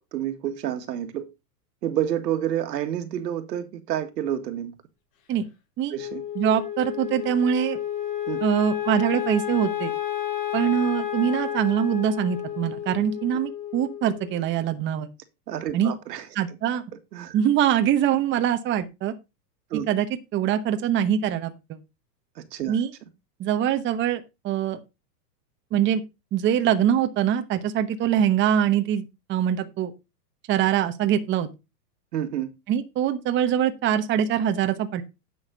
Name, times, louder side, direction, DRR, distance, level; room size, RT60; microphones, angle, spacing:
voice 1, 0.1-1.3 1.8-4.7 5.9-6.2 8.3-8.4 15.5-16.3 17.1-17.4 19.7-19.9 22.5-22.8 32.1-32.5, right 11 dB, 80° right, 2.0 m, -29 dB
Wind instrument woodwind instrument, 6.0-14.4, left 11 dB, 40° left, 4.7 m, -31 dB
voice 2, 6.3-7.8 8.4-9.9 10.5-15.1 15.7-15.9 16.3-16.8 17.3-19.1 19.9-20.1 20.3-21.8 22.7-22.9 23.4-24.8 25.7-26.0 26.3-29.9 30.5-31.5 32.7-35.0, right 10 dB, 25° right, 1.0 m, -23 dB
9.8 x 6.5 x 5.1 m
supercardioid pair, 140°, 49 cm